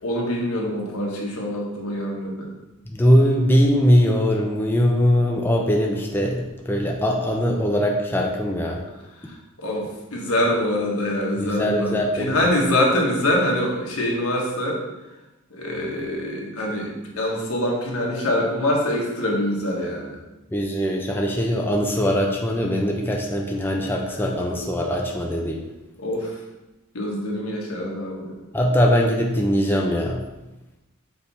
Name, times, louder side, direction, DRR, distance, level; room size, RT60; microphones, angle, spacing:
voice 1, 0.0-2.5 9.2-14.8 15.5-20.2 24.2-24.3 26.0-26.4 26.9-28.3, left 1 dB, 80° left, -2 dB, 1.4 m, -24 dB
voice 2, 2.9-8.8 11.4-12.4 20.5-25.6 28.5-30.2, equal, 10° left, 0 dB, 0.5 m, -21 dB
6.6 x 3.5 x 4.2 m, 1.0 s
head